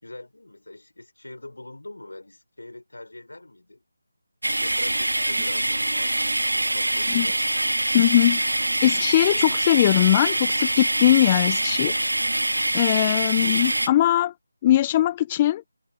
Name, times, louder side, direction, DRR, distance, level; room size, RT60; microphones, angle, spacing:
voice 1, 0.0-3.8 4.5-6.2 6.4-7.4, left 2 dB, 75° left, 5.6 m, -42 dB
sound 1, 4.4-13.9, right 1 dB, 80° right, 2.2 m, -24 dB
voice 2, 7.9-8.6 8.8-12.0 12.7-14.3 14.6-15.6, left 13 dB, 20° left, 0.5 m, -20 dB
figure-of-eight pair, 160°, 0 cm